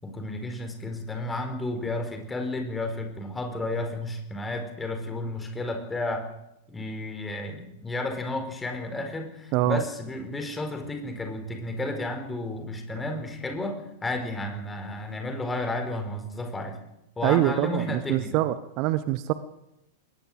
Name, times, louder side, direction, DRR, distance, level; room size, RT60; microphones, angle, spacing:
voice 1, 0.0-6.3 6.7-16.8 17.2-18.4, left 2 dB, 10° left, 6 dB, 4.5 m, -32 dB
voice 2, 17.2-19.3, right 14 dB, 40° right, 14 dB, 1.1 m, -24 dB
21.0 x 19.0 x 7.8 m, 0.84 s
figure-of-eight pair, 95°, 0 cm